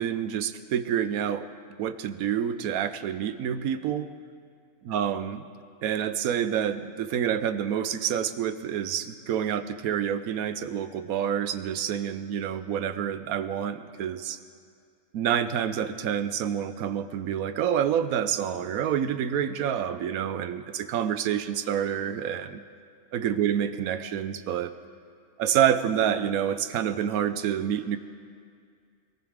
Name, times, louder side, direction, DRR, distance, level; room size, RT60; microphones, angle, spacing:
voice 1, 0.0-1.5 1.8-4.1 4.9-5.4 5.8-14.4 15.1-22.6 23.1-24.7 25.4-28.0, right 9 dB, 85° right, 12 dB, 1.1 m, -28 dB
23.0 x 14.5 x 3.6 m, 2.2 s
omnidirectional pair, 1.5 m